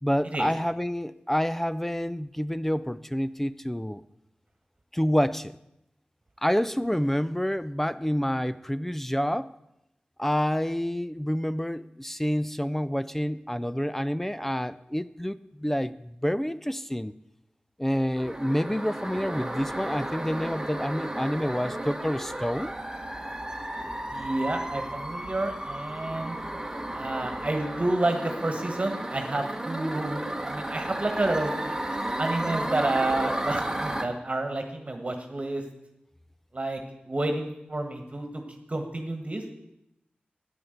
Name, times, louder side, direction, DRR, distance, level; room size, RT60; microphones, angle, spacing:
voice 1, 0.0-4.0 4.9-5.6 6.4-9.5 10.2-17.1 17.8-22.7, equal, 10° left, 15 dB, 0.4 m, -28 dB
sound 1, 18.2-34.1, right 1 dB, 15° right, 1.2 m, -33 dB
voice 2, 24.1-26.4 26.9-31.5 32.2-35.6 36.5-39.4, right 2 dB, 40° right, 6 dB, 1.5 m, -30 dB
9.8 x 9.6 x 7.9 m, 0.85 s
wide cardioid pair, 65°, 3 cm